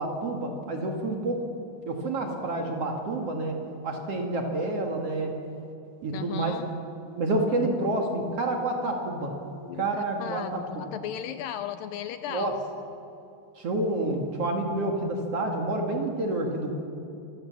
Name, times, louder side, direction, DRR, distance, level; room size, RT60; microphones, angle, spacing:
voice 1, 0.0-1.4 1.9-5.3 6.0-6.6 7.2-9.4 9.8-10.9 12.3-12.5 13.6-16.7, right 2 dB, 50° right, 2 dB, 2.4 m, -28 dB
voice 2, 6.1-6.7 9.6-12.5, left 10 dB, 80° left, 10 dB, 2.2 m, -36 dB
26.5 x 16.0 x 7.5 m, 2.8 s
omnidirectional pair, 4.4 m